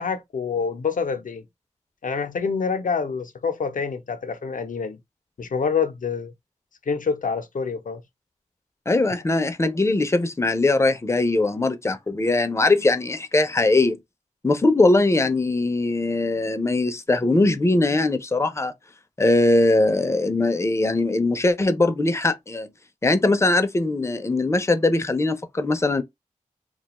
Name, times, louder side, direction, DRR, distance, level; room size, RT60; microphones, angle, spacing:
voice 1, 0.0-1.4 2.0-5.0 5.4-6.3 6.9-8.0 9.1-9.2, left 5 dB, 85° left, 0.5 m, -27 dB
voice 2, 8.9-14.0 14.4-18.7 19.2-22.7 23.0-26.0, left 2 dB, 20° left, 0.4 m, -21 dB
2.4 x 2.2 x 2.9 m
wide cardioid pair, 75°, 13 cm